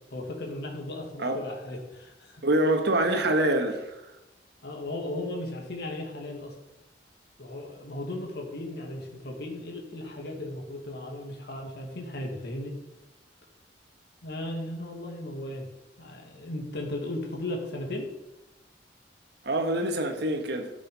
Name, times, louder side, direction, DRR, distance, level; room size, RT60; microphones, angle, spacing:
voice 1, 0.1-2.4 4.6-6.5 7.4-12.8 14.2-15.7 16.0-18.1, left 1 dB, 60° left, 2.4 m, -36 dB
voice 2, 2.4-3.8 19.4-20.7, right 1 dB, 60° right, 1.7 m, -25 dB
13.5 x 6.7 x 5.6 m
head